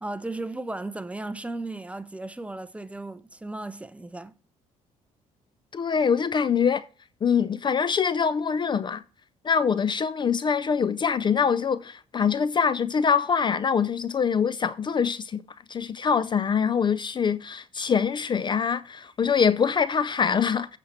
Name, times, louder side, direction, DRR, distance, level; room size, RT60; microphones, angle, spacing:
voice 1, 0.0-4.3, right 2 dB, 10° right, 0.6 m, -35 dB
voice 2, 5.7-6.8 7.2-9.0 9.4-15.4 15.7-20.8, left 6 dB, 35° left, 0.4 m, -24 dB
8.6 x 6.6 x 4.2 m
cardioid pair, 95°, 14 cm